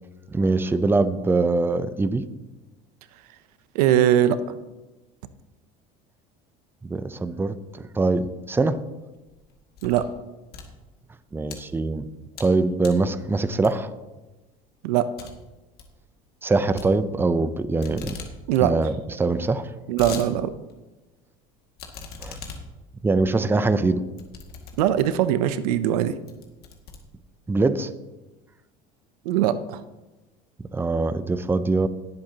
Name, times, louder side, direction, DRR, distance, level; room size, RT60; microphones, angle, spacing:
voice 1, 0.3-2.3 6.8-8.9 11.3-12.1 12.4-13.9 16.4-18.2 18.6-19.7 22.2-22.4 23.0-24.0 27.5-27.9 30.7-31.9, right 3 dB, 10° right, 12 dB, 0.6 m, -23 dB
voice 2, 3.7-4.4 9.8-10.0 14.8-15.1 18.5-18.7 19.9-20.5 24.8-26.2 29.2-29.8, right 11 dB, 90° right, 13 dB, 0.7 m, -21 dB
sound 1, 9.2-10.1 10.4-11.6 12.1-12.5 12.8-13.1 13.6-14.0 14.4-14.5 14.8-14.9 15.2-15.3 15.6-15.9 16.8-17.5 17.8-18.3 18.7-18.8 18.9-19.0 19.6-20.3 20.7-20.8 21.8-25.3 25.8-26.0 26.3-27.5, left 5 dB, 55° left, 2.1 m, -40 dB
18.0 x 7.9 x 2.9 m, 1.1 s
supercardioid pair, 100°, 19 cm